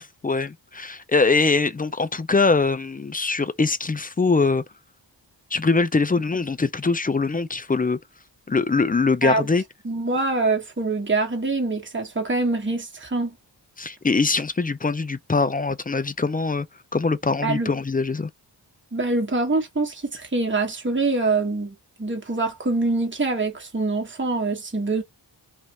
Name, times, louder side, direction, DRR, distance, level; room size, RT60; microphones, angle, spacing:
voice 1, 0.0-4.6 5.5-8.0 8.5-9.6 13.8-16.7 16.9-18.3, left 4 dB, 20° left, 0.4 m, -22 dB
voice 2, 9.8-13.3 17.4-17.7 18.9-25.0, right 3 dB, 25° right, 1.3 m, -24 dB
3.2 x 2.5 x 2.9 m
cardioid pair, 45°, 46 cm